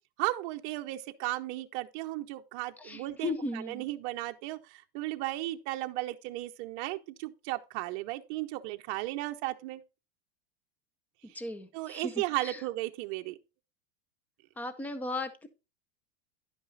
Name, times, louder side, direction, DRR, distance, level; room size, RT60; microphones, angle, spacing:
voice 1, 0.2-9.8 11.3-11.4 11.7-13.4, right 17 dB, 45° right, 0.8 m, -35 dB
voice 2, 2.8-3.8 11.2-12.1 12.4-12.6 14.6-15.5, left 2 dB, 5° left, 0.6 m, -36 dB
10.5 x 5.4 x 4.0 m
supercardioid pair, 155°, 33 cm